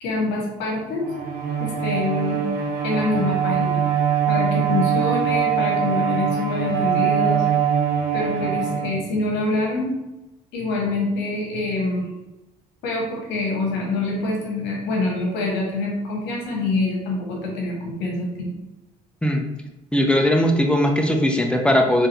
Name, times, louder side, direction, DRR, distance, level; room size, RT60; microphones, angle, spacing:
voice 1, 0.0-1.1 1.6-2.4 2.8-3.8 4.3-7.4 8.1-9.9 10.5-12.0 12.8-18.5, left 2 dB, 70° left, -2 dB, 1.3 m, -25 dB
Bowed string instrument, 1.0-9.4, right 7 dB, 55° right, 0.8 m, -22 dB
voice 2, 19.9-22.1, left 1 dB, 5° left, 2 dB, 0.8 m, -19 dB
3.8 x 3.4 x 2.9 m, 0.99 s
hypercardioid pair, 55°, 19 cm